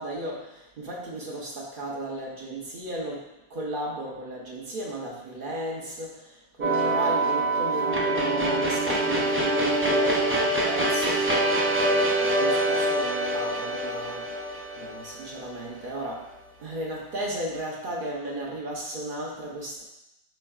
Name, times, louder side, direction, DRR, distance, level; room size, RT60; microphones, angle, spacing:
voice 1, 0.0-16.3 16.6-19.8, right 1 dB, 60° right, -3 dB, 0.9 m, -35 dB
sound 1, 6.6-15.8, right 1 dB, 15° right, 0.4 m, -25 dB
4.4 x 4.4 x 2.3 m, 0.88 s
omnidirectional pair, 1.1 m